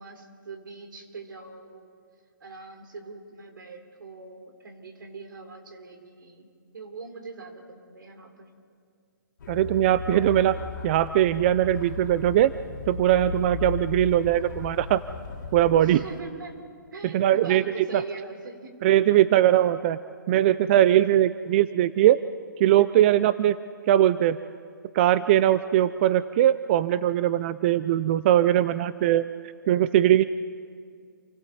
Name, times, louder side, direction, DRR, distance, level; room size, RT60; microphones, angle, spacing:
voice 1, 0.0-1.9 2.4-8.5 15.8-16.6 16.9-18.8, right 4 dB, 80° right, 5 dB, 3.5 m, -42 dB
sound 1, 9.4-16.2, left 5 dB, 65° left, 2.6 m, -36 dB
voice 2, 9.5-10.6 10.8-12.5 12.9-15.0 15.5-16.0 17.0-17.6 17.9-18.0 18.8-20.0 20.3-22.2 22.6-23.6 23.9-24.4 24.9-29.2 29.7-30.2, right 12 dB, 35° right, 15 dB, 0.5 m, -20 dB
28.5 x 24.5 x 4.2 m, 2.1 s
hypercardioid pair, 145°, 11 cm